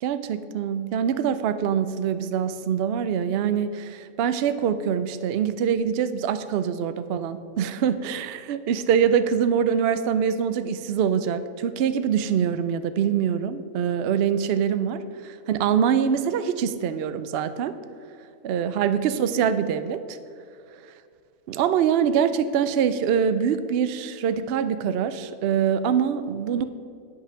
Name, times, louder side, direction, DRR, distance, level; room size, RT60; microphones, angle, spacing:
voice 1, 0.0-17.8 18.4-20.2 21.5-26.6, right 8 dB, 85° right, 12 dB, 0.5 m, -24 dB
8.9 x 5.7 x 6.7 m, 2.3 s
omnidirectional pair, 1.6 m